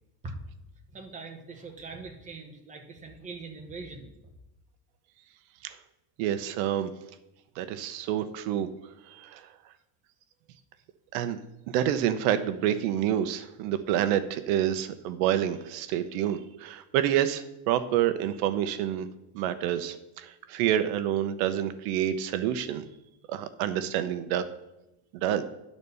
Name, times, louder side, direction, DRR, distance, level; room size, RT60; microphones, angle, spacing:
voice 1, 0.9-4.1, right 3 dB, 15° right, 2 dB, 1.1 m, -42 dB
voice 2, 6.2-6.9 7.6-8.7 9.1-9.4 11.1-11.4 11.7-19.1 19.3-22.8 23.3-24.4 25.1-25.4, right 11 dB, 60° right, 10 dB, 0.9 m, -28 dB
11.0 x 4.2 x 6.9 m, 0.93 s
cardioid pair, 170°, 48 cm